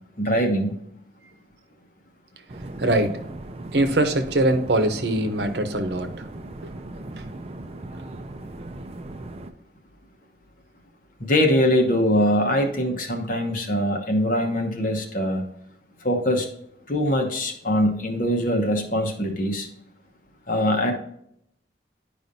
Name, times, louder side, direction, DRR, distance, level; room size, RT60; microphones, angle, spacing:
voice 1, 0.2-0.7 11.2-15.4 16.0-16.5 16.9-19.7 20.5-20.9, equal, 45° left, 3 dB, 1.1 m, -22 dB
sound 1, 2.5-9.5, right 2 dB, 35° right, 0.5 m, -38 dB
voice 2, 2.7-3.2 3.7-6.1 6.6-6.7, right 1 dB, 70° right, 7 dB, 0.9 m, -22 dB
11.0 x 5.1 x 2.7 m, 0.73 s
head